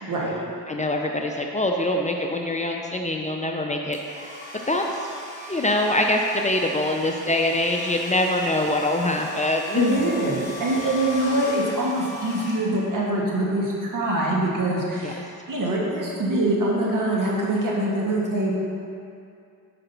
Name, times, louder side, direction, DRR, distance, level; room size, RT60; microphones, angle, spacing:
voice 1, 0.7-5.1 5.5-10.1 15.0-15.1, left 1 dB, 20° left, 2 dB, 0.6 m, -24 dB
Domestic sounds home sounds, 3.9-13.1, left 2 dB, 20° right, 1.7 m, -38 dB
voice 2, 9.7-18.5, right 1 dB, 60° right, -3 dB, 1.6 m, -24 dB
5.5 x 5.0 x 5.4 m, 2.5 s
cardioid pair, 65°, 36 cm